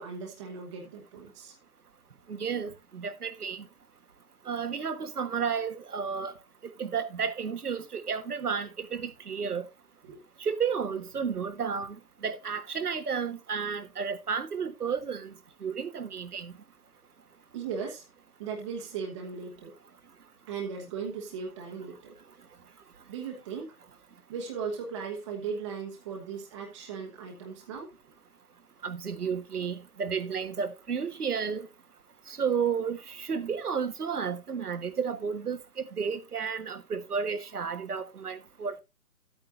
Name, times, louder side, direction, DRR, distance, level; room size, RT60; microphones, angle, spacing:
voice 1, 0.0-1.6 10.0-10.2 17.5-18.0 18.4-19.7 20.5-22.2 23.1-23.7 24.3-27.9, right 6 dB, 20° right, 1.1 m, -37 dB
voice 2, 2.3-3.6 4.5-6.3 6.8-9.6 10.4-15.3 15.6-16.5 28.8-31.7 32.3-38.8, right 6 dB, 80° right, 1.4 m, -32 dB
12.0 x 8.7 x 2.5 m
hypercardioid pair, 150°, 45 cm